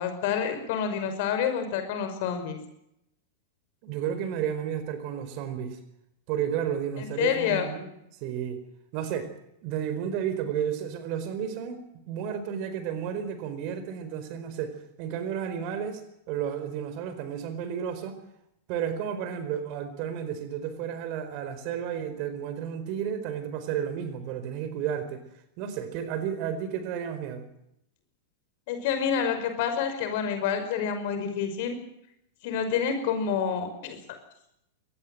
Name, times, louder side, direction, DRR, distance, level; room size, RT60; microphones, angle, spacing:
voice 1, 0.0-2.6 7.0-7.7 28.7-31.8 32.4-34.0, left 7 dB, 50° left, 8 dB, 5.5 m, -28 dB
voice 2, 3.8-5.8 6.3-7.9 8.2-8.6 8.9-9.3 9.6-18.2 18.7-25.2 25.6-27.5, right 8 dB, 40° right, 11 dB, 4.5 m, -32 dB
23.5 x 19.5 x 8.0 m, 0.80 s
figure-of-eight pair, 95°, 0 cm